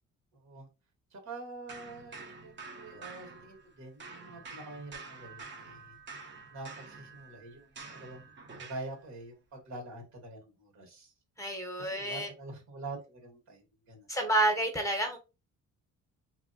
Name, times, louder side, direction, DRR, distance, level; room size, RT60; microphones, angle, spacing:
voice 1, 0.3-0.7 1.1-6.0 6.5-8.3 8.6-11.1 11.8-14.1, right 2 dB, 65° right, 1.5 m, -46 dB
sound 1, 1.7-3.7 4.0-8.9, right 4 dB, 40° right, 0.8 m, -48 dB
voice 2, 11.4-12.3 14.1-15.2, right 1 dB, 10° left, 0.9 m, -29 dB
3.0 x 2.7 x 2.7 m
cardioid pair, 90°, 30 cm